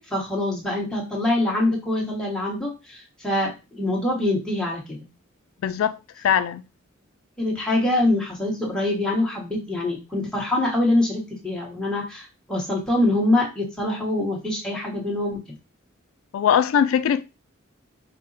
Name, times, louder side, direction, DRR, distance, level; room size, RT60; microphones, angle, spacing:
voice 1, 0.0-5.0 7.4-15.4, left 1 dB, 5° left, 1.2 m, -24 dB
voice 2, 5.6-6.0 6.2-6.6 16.3-17.2, left 8 dB, 85° left, 0.3 m, -20 dB
5.3 x 2.0 x 3.9 m
head